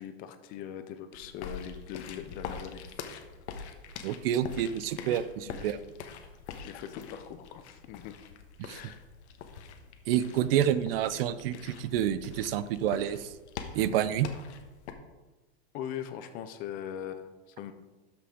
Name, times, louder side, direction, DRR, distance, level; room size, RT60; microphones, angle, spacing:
voice 1, 0.0-2.9 5.5-5.7 6.6-8.2 8.7-9.0 15.7-17.7, left 9 dB, 25° left, 9 dB, 0.4 m, -41 dB
sound 1, 1.1-14.9, left 6 dB, 80° left, 1.3 m, -44 dB
voice 2, 4.0-5.8 8.6-8.8 10.1-13.3 13.7-14.3, right 10 dB, 60° right, 14 dB, 0.6 m, -28 dB
12.5 x 5.8 x 3.7 m, 1.1 s
supercardioid pair, 155°, 33 cm